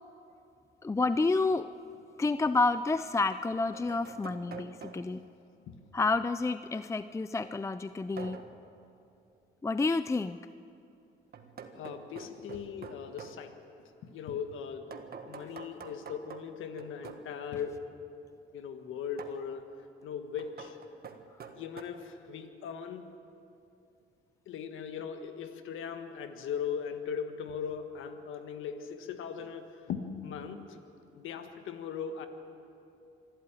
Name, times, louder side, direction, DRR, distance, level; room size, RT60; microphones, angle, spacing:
voice 1, 0.8-1.7 2.2-5.2 5.9-8.4 9.6-10.4, left 3 dB, 15° left, 13 dB, 0.4 m, -29 dB
sound 1, 1.9-2.0 3.3-5.3 8.2-8.6 11.3-13.4 14.9-17.3 19.2-19.5 20.4-21.8, right 6 dB, 50° right, 1.6 m, -47 dB
voice 2, 11.7-13.5 14.1-14.9 15.2-17.8 18.5-19.7 20.0-20.8 21.5-23.1 24.5-30.8 31.2-32.3, left 7 dB, 85° left, 7 dB, 1.6 m, -39 dB
26.0 x 12.5 x 9.1 m, 2.7 s
cardioid pair, 90°, 20 cm